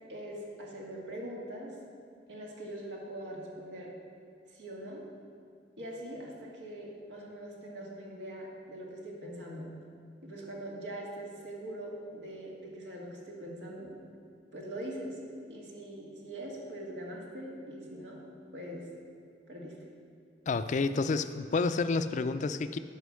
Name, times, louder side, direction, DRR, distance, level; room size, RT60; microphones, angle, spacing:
voice 1, 0.1-1.7 2.3-3.9 4.5-5.0 5.8-9.7 10.2-14.0 14.5-15.2 15.5-18.2 18.5-18.8 19.5-19.7, right 1 dB, 90° right, -3 dB, 2.0 m, -42 dB
voice 2, 20.5-22.8, left 4 dB, 45° left, 11 dB, 0.4 m, -29 dB
11.5 x 5.2 x 6.3 m, 2.2 s
head